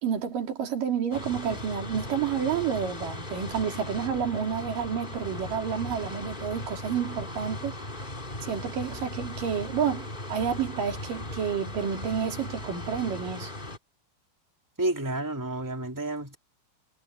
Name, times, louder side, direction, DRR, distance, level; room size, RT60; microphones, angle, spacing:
voice 1, 0.0-7.7 8.4-13.5, right 7 dB, 50° right, 4.3 m, -30 dB
sound 1, 1.1-13.8, left 1 dB, 15° left, 2.1 m, -38 dB
voice 2, 14.8-16.4, right 2 dB, 5° right, 2.6 m, -30 dB
omnidirectional pair, 5.3 m